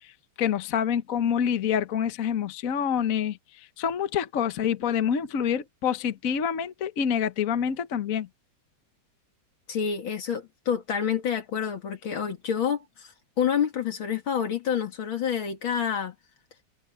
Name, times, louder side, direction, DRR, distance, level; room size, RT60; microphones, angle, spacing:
voice 1, 0.4-8.3, left 8 dB, 50° left, 1.2 m, -27 dB
voice 2, 9.7-13.1 13.4-16.1, left 8 dB, 70° left, 2.9 m, -28 dB
omnidirectional pair, 2.3 m